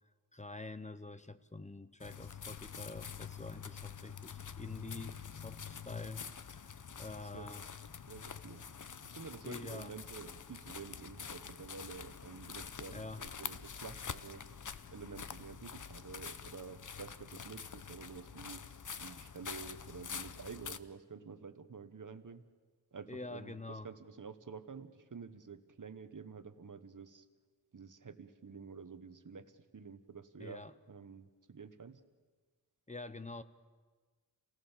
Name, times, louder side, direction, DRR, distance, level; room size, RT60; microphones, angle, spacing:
voice 1, 0.3-6.3 6.5-6.7 7.0-7.7 9.4-9.9 12.9-13.3 23.1-23.9 30.4-30.8 32.9-33.4, left 2 dB, 20° left, 12 dB, 0.9 m, -46 dB
Walking through City Forest Valdivia South of Chile, 2.0-20.8, left 6 dB, 50° left, 0.8 m, -47 dB
voice 2, 7.2-7.6 8.1-8.7 9.0-14.4 14.9-18.7 19.0-22.5 22.9-27.2 27.7-32.0, right 5 dB, 50° right, 11 dB, 1.3 m, -49 dB
27.5 x 18.0 x 7.4 m, 1.4 s
wide cardioid pair, 80°, 40 cm